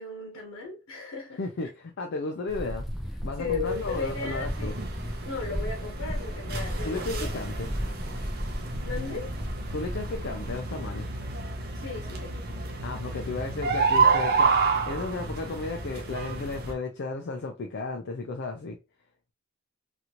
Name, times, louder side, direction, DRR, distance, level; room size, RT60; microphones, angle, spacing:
voice 1, 0.0-1.4 3.4-4.7 5.2-7.3 8.8-9.3 11.7-12.4, left 4 dB, 85° left, 1.1 m, -35 dB
voice 2, 1.4-2.9 3.2-4.8 6.8-7.7 9.7-11.1 12.8-14.5 14.9-18.8, left 3 dB, 55° left, 0.5 m, -34 dB
sound 1, 2.5-10.6, equal, ahead, 0.5 m, -35 dB
sound 2, 3.6-16.7, right 4 dB, 45° right, 0.6 m, -30 dB
2.9 x 2.5 x 2.8 m
head